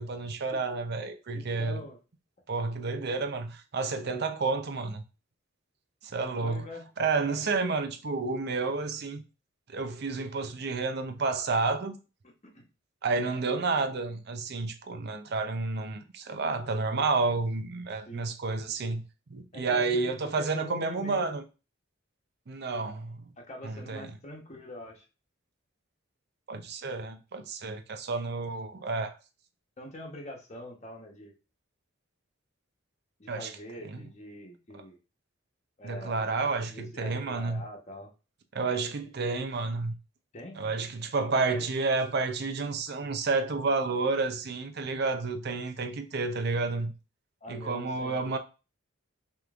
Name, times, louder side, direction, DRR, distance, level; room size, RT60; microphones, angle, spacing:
voice 1, 0.0-1.8 2.5-5.0 6.0-6.6 7.0-9.2 9.7-11.9 13.0-19.0 19.3-21.4 22.5-23.3 23.6-24.2 26.5-29.1 33.3-33.5 33.8-34.0 34.7-34.8 35.8-37.6 38.5-39.9 40.6-46.9 47.5-48.4, right 3 dB, 55° right, 0.6 m, -30 dB
voice 2, 1.3-2.0 6.4-6.8 12.5-12.6 18.1-18.3 19.5-21.4 23.4-25.0 29.8-31.3 33.2-35.0 35.8-36.3 36.7-38.1 40.3-40.6 41.3-41.9 47.4-48.4, left 1 dB, 35° left, 1.1 m, -44 dB
5.1 x 3.1 x 2.5 m
head